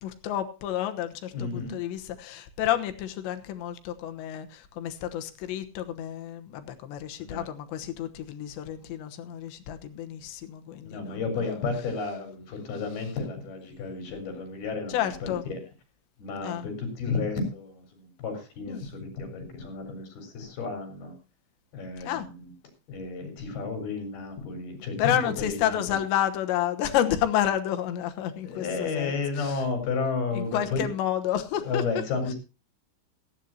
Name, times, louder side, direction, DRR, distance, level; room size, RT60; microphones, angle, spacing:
voice 1, 0.0-11.2 14.9-15.4 16.4-16.7 18.7-18.8 22.0-22.3 25.0-29.6 30.3-31.8, left 11 dB, 80° left, 8 dB, 3.4 m, -30 dB
voice 2, 1.3-1.8 7.2-7.5 10.9-15.6 16.2-21.1 21.7-22.5 22.9-26.0 28.4-30.9 31.6-32.3, left 4 dB, 60° left, 5 dB, 6.2 m, -32 dB
17.5 x 14.5 x 2.8 m, 0.29 s
omnidirectional pair, 5.1 m